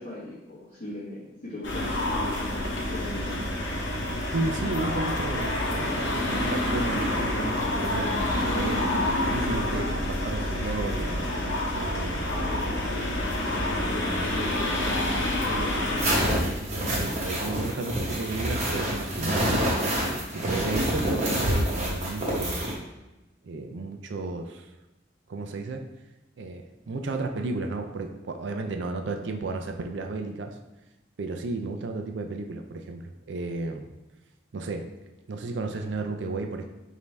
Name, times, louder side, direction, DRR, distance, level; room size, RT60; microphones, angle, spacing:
voice 1, 0.0-2.6 2.9-3.4 12.2-12.9 13.4-13.8 14.2-15.1 15.4-16.1, left 1 dB, 45° left, -11 dB, 1.2 m, -39 dB
sound 1, 1.6-16.2, left 1 dB, 90° left, 0.9 m, -28 dB
voice 2, 4.3-12.2 14.6-14.7 16.4-19.7 20.3-22.7 23.4-24.7 25.3-25.9 26.4-30.5 31.2-33.9 34.5-34.9 35.3-36.6, right 3 dB, 75° right, 5 dB, 0.4 m, -33 dB
sound 2, 16.0-22.7, equal, 35° right, 0.9 m, -27 dB
5.1 x 2.7 x 3.3 m, 1.0 s
head